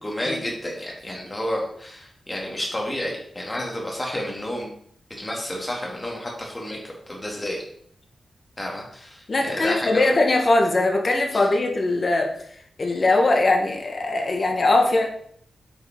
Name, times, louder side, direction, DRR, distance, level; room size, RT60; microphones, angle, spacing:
voice 1, 0.0-4.7 5.2-7.6 8.6-10.1 11.3-11.5, left 1 dB, 20° left, -1 dB, 2.5 m, -30 dB
voice 2, 9.3-12.3 12.8-15.0, left 2 dB, 45° left, 2 dB, 1.7 m, -20 dB
9.3 x 6.1 x 3.8 m, 0.64 s
wide cardioid pair, 120°, 0 cm